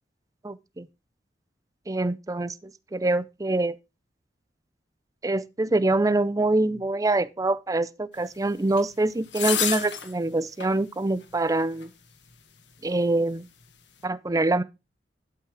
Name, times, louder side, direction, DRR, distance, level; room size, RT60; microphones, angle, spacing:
voice 1, 0.4-0.9 1.9-3.8 5.2-11.9 12.8-13.5 14.0-14.6, right 2 dB, 20° right, 0.5 m, -25 dB
sound 1, 8.8-8.9 9.3-10.1 10.6-10.8 11.8-11.9, left 8 dB, 85° left, 1.6 m, -28 dB
12.0 x 5.6 x 4.9 m
head